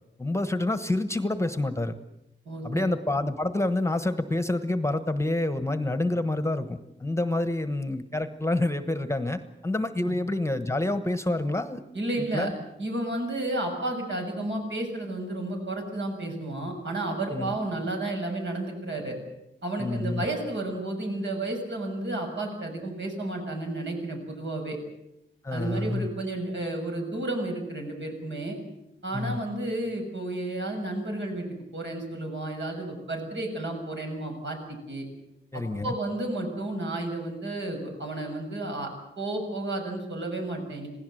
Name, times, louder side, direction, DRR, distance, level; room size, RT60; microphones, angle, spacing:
voice 1, 0.2-2.0 2.6-11.8 12.3-12.5 17.3-17.6 19.8-20.2 25.4-26.1 29.1-29.4 35.5-36.0, left 2 dB, 15° left, 10 dB, 1.1 m, -28 dB
voice 2, 2.5-2.8 10.0-10.2 11.3-11.4 11.9-12.5 12.8-19.2 19.6-24.8 25.5-28.6 29.0-31.5 31.7-35.1 35.5-38.9 39.2-40.9, right 2 dB, 70° right, 2 dB, 6.9 m, -32 dB
27.5 x 17.5 x 7.8 m, 0.86 s
wide cardioid pair, 140°, 20 cm